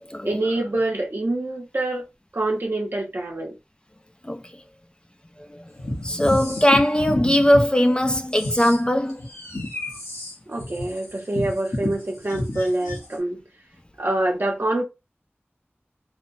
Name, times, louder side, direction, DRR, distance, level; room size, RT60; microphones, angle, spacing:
voice 1, 0.2-2.0 2.3-3.5 10.5-13.4 14.0-14.8, right 1 dB, 55° right, 1.0 m, -25 dB
sound 1, 5.8-7.7 8.0-13.1, left 1 dB, 80° left, 0.9 m, -30 dB
voice 2, 6.0-9.2, left 1 dB, 20° left, 0.4 m, -19 dB
3.1 x 2.0 x 2.6 m
wide cardioid pair, 45°, 4 cm